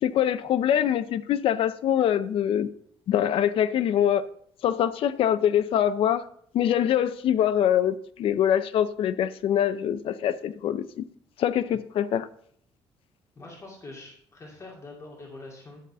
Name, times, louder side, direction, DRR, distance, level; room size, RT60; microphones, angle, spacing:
voice 1, 0.0-2.7 3.1-4.2 4.6-6.3 6.5-11.0 11.4-12.3, left 10 dB, 65° left, 13 dB, 0.5 m, -24 dB
voice 2, 13.4-15.8, left 2 dB, 30° left, -3 dB, 2.4 m, -44 dB
12.0 x 4.1 x 7.3 m, 0.65 s
cardioid pair, 125°, 10 cm